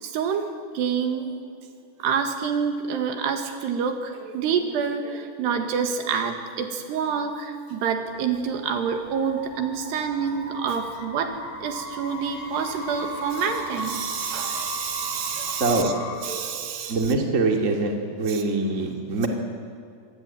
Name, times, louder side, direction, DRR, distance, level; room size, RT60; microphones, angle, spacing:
voice 1, 0.0-0.5 0.7-1.4 2.0-15.9 16.2-17.1 18.3-18.4, right 6 dB, 80° right, 6 dB, 4.0 m, -27 dB
sound 1, 8.1-16.1, left 1 dB, 75° left, 8.3 m, -36 dB
voice 2, 15.6-15.9 16.9-19.3, right 3 dB, 20° right, 3 dB, 2.5 m, -23 dB
26.0 x 21.0 x 9.1 m, 2.3 s
omnidirectional pair, 4.8 m